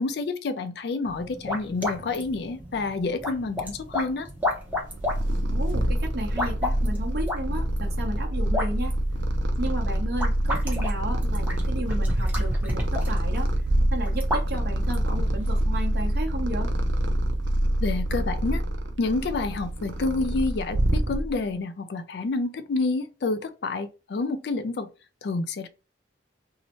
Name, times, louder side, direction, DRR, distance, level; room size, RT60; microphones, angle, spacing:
voice 1, 0.0-4.3 17.8-18.6 19.0-24.9 25.2-25.7, left 3 dB, 60° left, 0.4 m, -28 dB
sound 1, 1.1-15.6, left 1 dB, 10° right, 0.6 m, -33 dB
Purr, 4.7-21.5, right 1 dB, 85° right, 0.5 m, -26 dB
voice 2, 5.5-9.0 9.6-13.5 13.9-16.7, right 1 dB, 55° right, 0.9 m, -33 dB
2.7 x 2.1 x 2.9 m
head